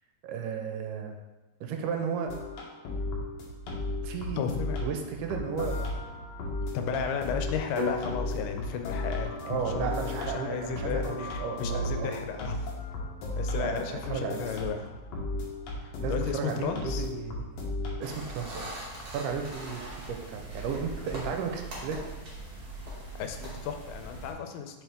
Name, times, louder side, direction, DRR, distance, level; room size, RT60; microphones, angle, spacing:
voice 1, 0.2-1.2 1.6-2.3 4.0-4.4 4.8-5.7 6.8-7.0 9.4-12.1 13.6-14.5 16.0-17.7 18.0-18.7 19.1-22.2, right 6 dB, 85° right, 4 dB, 2.2 m, -34 dB
sound 1, 2.3-18.3, left 1 dB, 65° left, 1.9 m, -35 dB
voice 2, 4.4-4.8 6.7-12.7 13.3-14.9 15.8-17.1 23.2-24.8, left 7 dB, 90° left, 6 dB, 2.3 m, -34 dB
sound 2, 7.8-11.8, left 2 dB, 5° left, 1.4 m, -40 dB
sound 3, 18.0-24.3, right 1 dB, 45° right, 2.3 m, -41 dB
7.1 x 5.1 x 3.5 m, 1.1 s
omnidirectional pair, 3.8 m